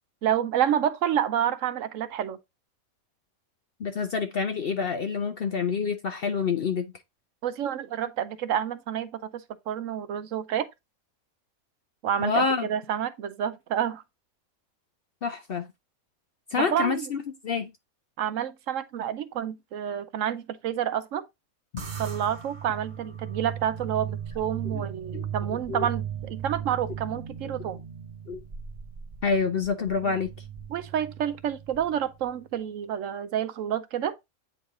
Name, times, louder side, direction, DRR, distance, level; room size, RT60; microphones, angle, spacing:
voice 1, 0.2-2.4 7.4-10.7 12.0-14.0 16.6-17.1 18.2-21.2 22.0-27.8 30.0-30.2 30.7-34.1, right 9 dB, 70° right, 0.9 m, -29 dB
voice 2, 3.8-6.9 12.2-12.7 15.2-15.7 16.5-17.7 24.7-24.9 25.1-25.3 25.7-25.9 28.3-28.4 29.2-30.3, left 5 dB, 55° left, 0.6 m, -27 dB
sound 1, 21.8-32.4, right 8 dB, 40° right, 0.9 m, -37 dB
8.7 x 3.1 x 3.7 m
omnidirectional pair, 1.5 m